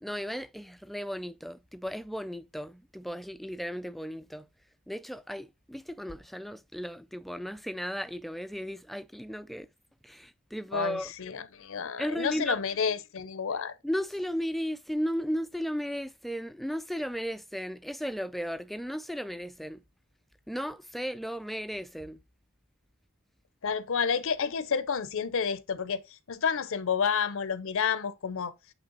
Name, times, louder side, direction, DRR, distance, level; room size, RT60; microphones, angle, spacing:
voice 1, 0.0-4.5 4.9-9.7 10.0-11.1 12.0-12.6 13.8-19.8 20.5-22.2, equal, ahead, 0.3 m, -35 dB
voice 2, 10.7-13.7 23.6-28.5, left 6 dB, 65° left, 0.6 m, -30 dB
8.8 x 3.3 x 3.9 m
head